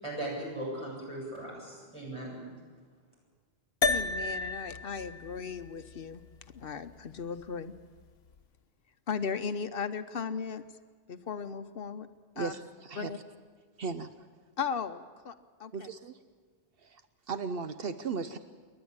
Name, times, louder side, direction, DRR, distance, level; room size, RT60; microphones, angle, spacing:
voice 1, 0.0-2.4, right 1 dB, 30° right, -4 dB, 8.0 m, -38 dB
sound 1, 3.8-8.4, left 4 dB, 85° left, 1.1 m, -35 dB
voice 2, 3.8-6.2 6.5-7.7 9.1-10.6 11.1-12.1 12.4-12.5 13.0-13.2 14.6-15.3 15.6-15.9, left 6 dB, 65° left, 10 dB, 1.0 m, -36 dB
voice 3, 12.4-13.1 13.8-14.1 15.7-16.1 16.8-17.0 17.3-18.4, right 5 dB, 70° right, 10 dB, 1.0 m, -36 dB
28.5 x 11.5 x 8.9 m, 1.5 s
omnidirectional pair, 1.0 m